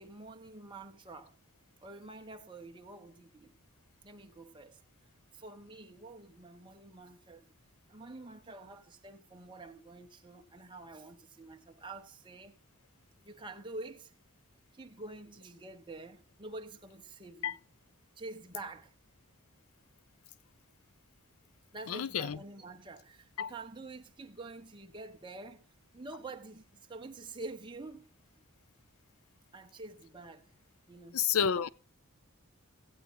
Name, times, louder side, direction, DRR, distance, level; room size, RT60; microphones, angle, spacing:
voice 1, 0.0-1.4 1.8-3.5 4.0-4.8 5.3-7.5 7.9-12.6 13.2-14.1 14.7-17.6 18.2-18.9 21.7-25.6 25.9-28.1 29.5-30.5 30.9-31.2, right 2 dB, 20° right, 0.9 m, -47 dB
voice 2, 21.9-22.4 23.4-23.5 31.1-31.7, left 7 dB, 80° left, 0.5 m, -30 dB
16.0 x 8.3 x 4.0 m
head